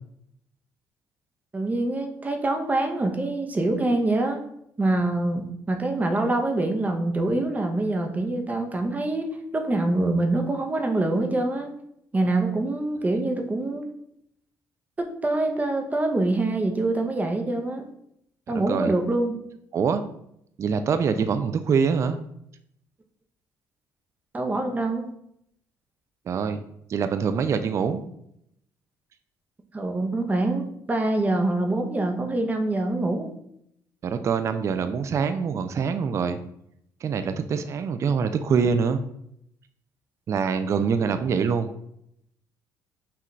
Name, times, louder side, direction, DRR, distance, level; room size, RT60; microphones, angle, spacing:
voice 1, 1.5-4.4 4.8-9.3 9.5-11.7 12.1-13.8 15.0-17.8 18.5-19.3 24.3-25.1 29.7-33.3, right 2 dB, 20° right, 4 dB, 0.7 m, -25 dB
voice 2, 18.5-18.9 19.7-20.0 20.6-22.2 26.3-26.6 26.9-28.0 34.0-36.4 37.0-39.0 40.3-41.7, right 6 dB, 45° right, 10 dB, 0.3 m, -24 dB
5.7 x 2.4 x 3.1 m, 0.74 s
cardioid pair, 95°, 7 cm